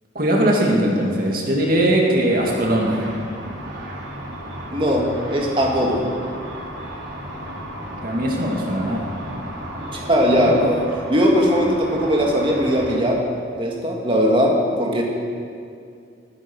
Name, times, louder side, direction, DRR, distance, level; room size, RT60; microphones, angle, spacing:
voice 1, 0.1-2.9 8.0-9.0 10.3-10.6, right 1 dB, 50° right, -1 dB, 2.5 m, -20 dB
Car / Traffic noise roadway noise / Engine, 2.4-12.9, right 1 dB, 90° right, 3.5 m, -34 dB
voice 2, 4.7-6.0 9.8-10.8 11.1-13.2 13.6-15.0, equal, 30° right, -1 dB, 2.2 m, -19 dB
20.0 x 9.5 x 6.3 m, 2.4 s
head